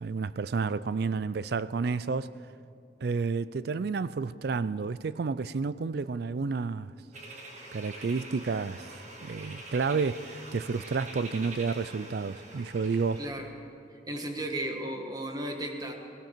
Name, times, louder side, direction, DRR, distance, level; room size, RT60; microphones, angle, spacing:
voice 1, 0.0-2.3 3.0-6.9 7.7-8.9 9.2-13.2, right 4 dB, 60° right, 0.4 m, -30 dB
sound 1, 7.1-13.3, right 2 dB, 40° right, 1.7 m, -45 dB
voice 2, 14.1-15.9, right 1 dB, 20° right, 1.4 m, -34 dB
18.0 x 17.5 x 4.5 m
head